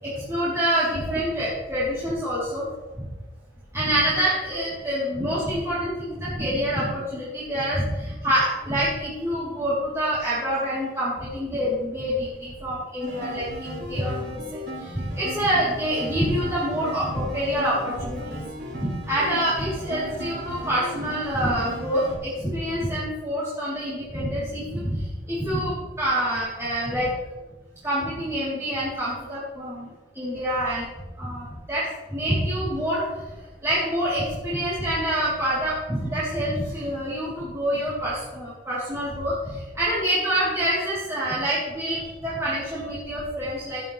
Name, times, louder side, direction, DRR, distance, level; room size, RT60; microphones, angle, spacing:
voice 1, 0.0-2.7 3.0-3.1 3.7-18.4 18.8-27.1 27.8-29.9 30.2-30.9 31.2-33.0 33.6-43.8, equal, 15° right, -10 dB, 3.5 m, -26 dB
sound 1, 13.0-22.1, equal, 80° right, 4.5 m, -37 dB
18.5 x 7.8 x 3.3 m, 1.2 s
head